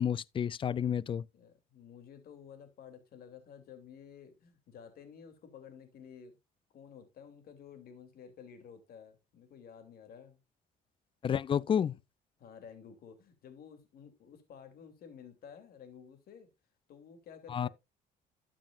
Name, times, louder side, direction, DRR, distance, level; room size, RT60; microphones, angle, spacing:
voice 1, 0.0-1.2 11.2-12.0 17.5-17.7, left 8 dB, 30° left, 0.4 m, -30 dB
voice 2, 1.3-6.4 6.7-10.4 11.7-11.9 12.4-16.5 16.9-17.7, left 7 dB, 65° left, 2.9 m, -52 dB
12.5 x 7.4 x 2.5 m
cardioid pair, 110°, 17 cm